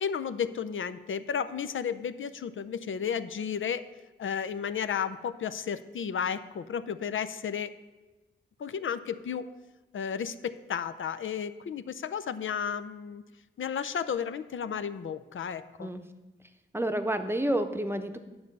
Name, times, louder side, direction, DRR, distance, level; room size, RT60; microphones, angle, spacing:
voice 1, 0.0-3.9 4.2-7.7 8.6-9.5 9.9-13.2 13.6-15.9, left 7 dB, 75° left, 12 dB, 0.5 m, -33 dB
voice 2, 16.7-18.2, right 1 dB, 10° right, 7 dB, 0.8 m, -29 dB
9.7 x 7.0 x 5.3 m, 1.1 s
cardioid pair, 70°, 21 cm